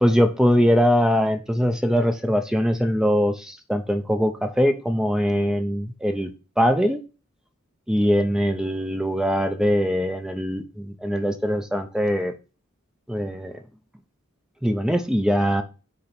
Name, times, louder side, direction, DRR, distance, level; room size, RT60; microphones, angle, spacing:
voice 1, 0.0-6.3 6.6-7.0 7.9-12.3 13.1-13.5 14.6-15.6, equal, 5° right, 7 dB, 0.6 m, -22 dB
8.7 x 3.0 x 5.9 m, 0.33 s
head